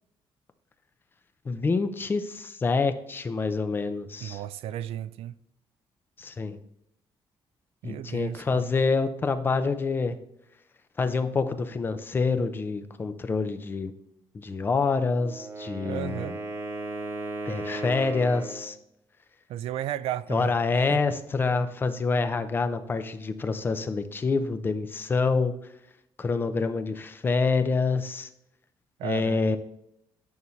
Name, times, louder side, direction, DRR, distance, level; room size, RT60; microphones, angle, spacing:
voice 1, 1.5-4.4 6.2-6.6 7.8-10.2 11.0-13.9 14.3-16.4 17.5-18.8 20.3-25.5 26.2-28.3 29.0-29.6, left 4 dB, 20° left, 0.6 m, -27 dB
voice 2, 4.2-5.4 7.8-8.6 15.8-16.4 19.5-21.0 29.0-29.6, right 12 dB, 85° right, 0.4 m, -34 dB
Wind instrument woodwind instrument, 15.2-18.7, right 2 dB, 25° right, 1.1 m, -36 dB
9.4 x 5.4 x 3.2 m
cardioid pair, 180°, 10 cm